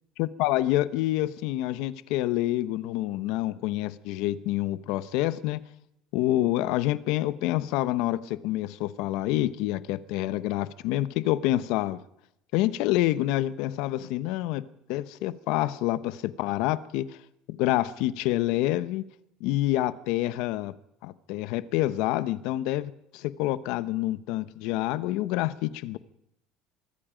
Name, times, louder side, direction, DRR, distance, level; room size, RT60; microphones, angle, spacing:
voice 1, 0.2-5.6 6.1-12.0 12.5-14.6 14.9-17.2 17.5-19.0 19.4-20.7 21.0-26.0, left 15 dB, 65° left, 15 dB, 0.9 m, -27 dB
24.0 x 22.5 x 5.2 m, 0.78 s
cardioid pair, 170°, 0 cm